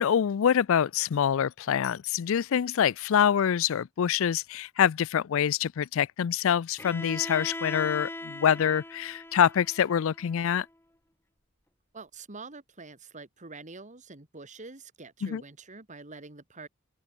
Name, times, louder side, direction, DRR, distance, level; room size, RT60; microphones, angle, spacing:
voice 1, 0.0-10.7 15.2-15.4, left 8 dB, 70° left, 0.4 m, -25 dB
Bowed string instrument, 6.8-10.7, left 1 dB, 10° left, 6.0 m, -40 dB
voice 2, 11.9-16.7, right 3 dB, 35° right, 2.3 m, -46 dB
head